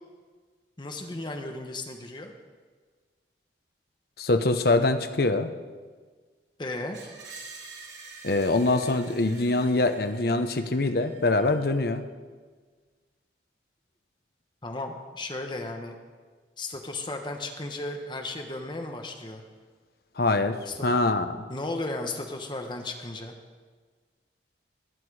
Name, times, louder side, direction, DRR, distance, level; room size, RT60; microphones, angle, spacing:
voice 1, 0.8-2.3 6.6-7.0 14.6-15.9 16.6-19.4 20.7-20.9 21.5-23.3, left 2 dB, 25° left, 4 dB, 1.0 m, -35 dB
voice 2, 4.2-5.5 8.2-12.0 20.2-20.6 20.8-21.4, left 2 dB, 55° left, 8 dB, 0.8 m, -24 dB
Screech, 6.9-11.9, right 4 dB, 80° right, 2.8 m, -47 dB
20.0 x 9.7 x 4.9 m, 1.5 s
head